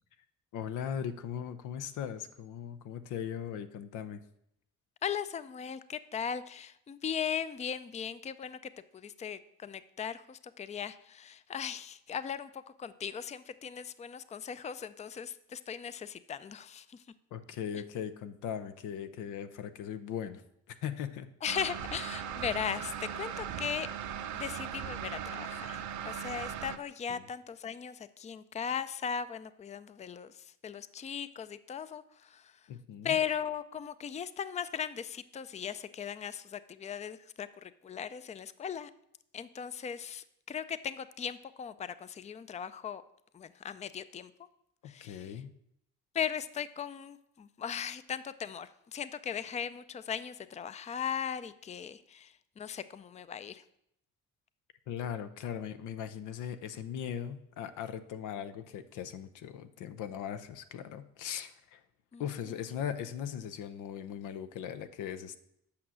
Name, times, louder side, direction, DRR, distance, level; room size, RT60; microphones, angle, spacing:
voice 1, 0.5-4.2 17.3-20.4 20.8-21.3 27.1-27.3 32.7-33.2 44.8-45.5 54.9-61.8 62.2-65.4, left 8 dB, 85° left, 10 dB, 0.7 m, -39 dB
voice 2, 5.0-8.6 8.9-17.0 21.4-23.9 24.3-25.8 26.0-30.3 30.6-32.5 33.0-38.9 39.3-43.0 43.3-44.3 44.9-45.3 46.1-53.6 62.1-62.2, left 8 dB, 25° left, 14 dB, 0.4 m, -38 dB
sound 1, 21.5-26.8, right 9 dB, 70° right, 0.8 m, -39 dB
8.6 x 5.9 x 6.3 m, 0.76 s
cardioid pair, 90°, 30 cm